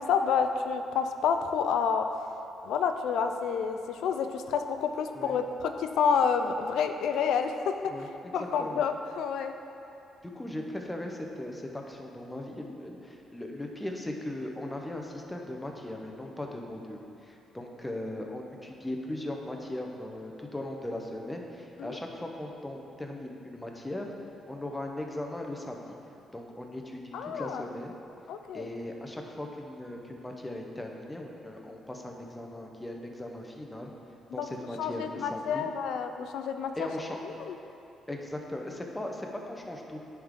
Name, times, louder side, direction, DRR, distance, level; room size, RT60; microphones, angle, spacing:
voice 1, 0.0-2.1 2.6-9.5 21.8-22.0 27.1-27.6 28.3-28.7 34.4-34.5 34.8-36.7 37.4-37.6, left 6 dB, 80° left, 7 dB, 0.3 m, -29 dB
voice 2, 7.9-8.9 10.2-24.1 24.5-25.8 26.3-28.0 28.5-33.9 34.3-35.7 36.8-37.2 38.1-40.0, left 1 dB, 10° left, 1 dB, 0.8 m, -38 dB
10.0 x 3.7 x 3.7 m, 2.8 s
cardioid pair, 90°, 0 cm